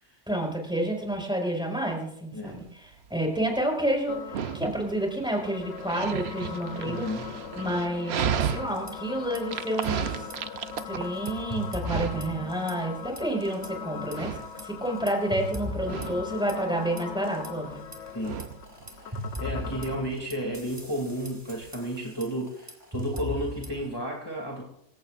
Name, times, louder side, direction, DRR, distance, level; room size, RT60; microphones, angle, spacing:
voice 1, 0.3-7.1 7.5-10.3 10.8-17.8, right 1 dB, 5° right, 0 dB, 5.1 m, -30 dB
Dog, 2.5-21.7, right 8 dB, 65° right, 1.0 m, -36 dB
sound 1, 4.1-20.1, left 8 dB, 75° left, 1.1 m, -41 dB
voice 2, 6.8-7.2 18.1-18.4 19.0-24.6, equal, 20° left, -1 dB, 2.5 m, -33 dB
sound 2, 8.6-9.4 9.7-9.9 10.2-12.9 13.2-13.7 14.1-17.5 17.9-23.9, left 1 dB, 20° right, 3.0 m, -39 dB
27.0 x 15.5 x 2.5 m, 0.75 s
omnidirectional pair, 1.2 m